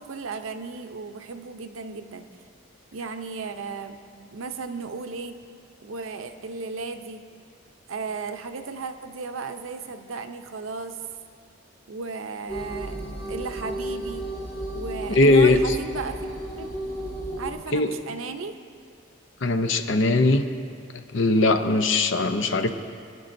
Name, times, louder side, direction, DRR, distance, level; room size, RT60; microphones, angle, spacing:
voice 1, 0.0-2.3 2.9-5.4 5.8-7.2 7.9-11.0 11.9-13.0 13.3-14.3 14.7-16.3 16.6-16.7 17.4-18.5, right 4 dB, 85° right, 7 dB, 0.7 m, -35 dB
sound 1, 12.5-17.5, right 1 dB, 50° left, 2.1 m, -33 dB
voice 2, 15.1-15.8 17.7-17.9 19.4-20.4 20.9-22.7, left 2 dB, 65° left, 8 dB, 0.7 m, -20 dB
23.5 x 10.0 x 2.6 m, 2.3 s
head